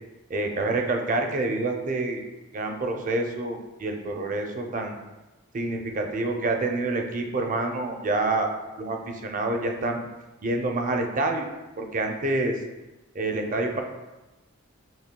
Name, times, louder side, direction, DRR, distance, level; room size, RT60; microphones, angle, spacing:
voice 1, 0.3-2.2 2.5-5.0 5.5-8.5 8.8-10.0 10.4-11.5 11.8-12.5 13.1-13.8, right 2 dB, 40° right, 3 dB, 0.5 m, -27 dB
7.1 x 3.0 x 2.2 m, 1.1 s
head